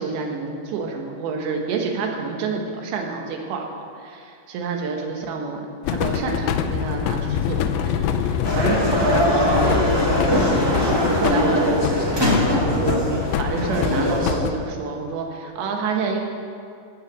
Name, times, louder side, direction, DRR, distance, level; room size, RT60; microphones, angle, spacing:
voice 1, 0.0-9.9 10.5-13.1 13.4-16.2, right 4 dB, 85° right, 2 dB, 3.6 m, -28 dB
sound 1, 5.8-14.5, left 8 dB, 85° left, 2.2 m, -25 dB
sound 2, 8.4-14.3, equal, 25° right, 0.4 m, -21 dB
17.0 x 6.0 x 7.4 m, 2.4 s
omnidirectional pair, 5.0 m